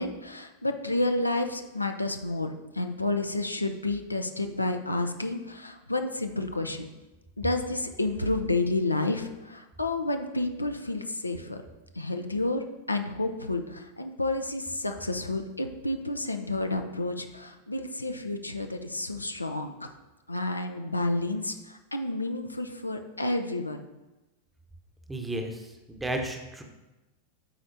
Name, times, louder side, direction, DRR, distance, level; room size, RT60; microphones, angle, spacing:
voice 1, 0.0-6.9 7.4-11.6 11.9-19.7 20.3-23.9, left 2 dB, 85° left, 6 dB, 0.4 m, -30 dB
voice 2, 25.1-25.6 25.9-26.6, right 1 dB, 10° right, 4 dB, 0.9 m, -32 dB
13.0 x 4.3 x 2.6 m, 1.1 s
figure-of-eight pair, 90°, 0 cm